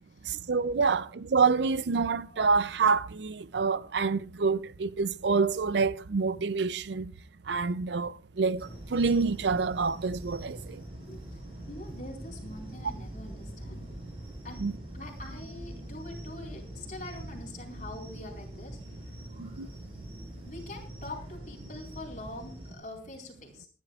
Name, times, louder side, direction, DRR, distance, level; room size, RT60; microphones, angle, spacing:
voice 1, 0.3-7.1 7.5-10.6 14.6-14.8 19.4-19.7, right 4 dB, 70° right, 0.5 m, -27 dB
sound 1, 8.6-22.7, right 1 dB, 30° right, 6.4 m, -43 dB
voice 2, 11.7-13.8 14.4-14.6 14.9-18.8 20.5-23.7, left 2 dB, 45° left, 4.4 m, -44 dB
25.5 x 11.5 x 2.4 m
head